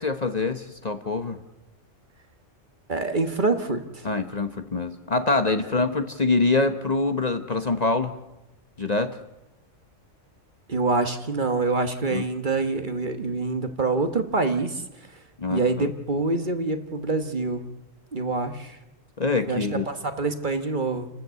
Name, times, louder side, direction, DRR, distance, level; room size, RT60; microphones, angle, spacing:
voice 1, 0.0-1.4 4.0-8.1 8.8-9.2 12.1-12.2 15.4-15.6 19.2-19.9, left 3 dB, 35° left, 8 dB, 1.0 m, -25 dB
voice 2, 2.9-4.1 10.7-15.2 15.5-17.6 18.1-18.8 19.5-21.1, right 3 dB, 40° right, 8 dB, 1.4 m, -26 dB
29.0 x 13.5 x 8.1 m, 0.98 s
omnidirectional pair, 1.3 m